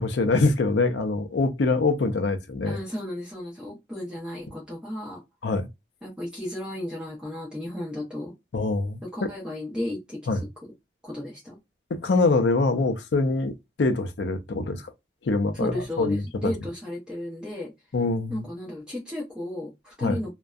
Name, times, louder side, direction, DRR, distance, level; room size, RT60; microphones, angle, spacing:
voice 1, 0.0-2.8 5.4-5.7 8.5-9.3 10.3-10.4 11.9-14.8 15.2-16.5 17.9-18.5 20.0-20.2, left 3 dB, 65° left, 0.4 m, -24 dB
voice 2, 2.6-5.2 6.0-8.3 9.0-10.4 11.0-11.6 15.5-17.7 18.3-20.3, left 1 dB, 5° right, 0.7 m, -34 dB
2.6 x 2.1 x 2.3 m
head